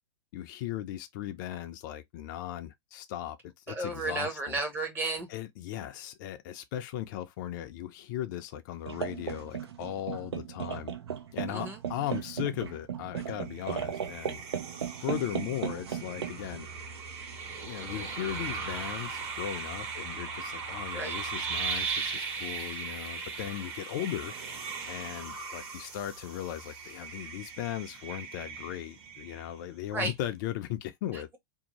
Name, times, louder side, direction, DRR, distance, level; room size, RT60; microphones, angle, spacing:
voice 1, 0.3-4.6 5.3-10.9 11.3-14.4 15.0-16.7 17.6-24.3 24.9-31.3, left 12 dB, 50° left, 0.5 m, -37 dB
voice 2, 3.7-5.3 11.5-11.8 14.8-14.9 20.9-21.2 29.9-30.1 31.1-31.4, right 2 dB, 15° right, 0.8 m, -33 dB
sound 1, 8.9-19.3, right 8 dB, 80° right, 0.6 m, -38 dB
sound 2, 13.5-29.8, right 5 dB, 40° right, 1.2 m, -38 dB
2.7 x 2.1 x 2.9 m
hypercardioid pair, 125°, 13 cm